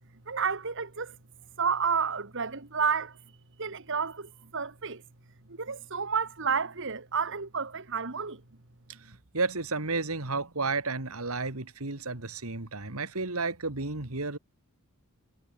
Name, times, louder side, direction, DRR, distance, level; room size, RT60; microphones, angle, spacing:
voice 1, 0.3-1.1 1.6-3.2 3.6-5.0 5.6-8.4, right 6 dB, 60° right, 2.0 m, -30 dB
voice 2, 9.3-14.4, right 3 dB, 80° right, 2.6 m, -32 dB
head